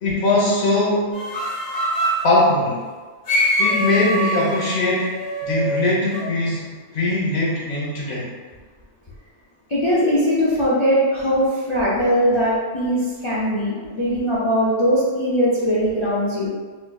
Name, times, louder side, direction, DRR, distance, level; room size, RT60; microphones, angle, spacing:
voice 1, 0.0-1.2 2.2-2.8 3.6-5.1 5.4-8.3, left 2 dB, 60° left, -5 dB, 1.1 m, -20 dB
sound 1, 1.1-2.2 3.3-6.3, equal, 75° left, 1.5 m, -24 dB
voice 2, 9.7-16.5, equal, 40° left, -8 dB, 0.4 m, -20 dB
4.1 x 2.5 x 2.3 m, 1.4 s
omnidirectional pair, 1.3 m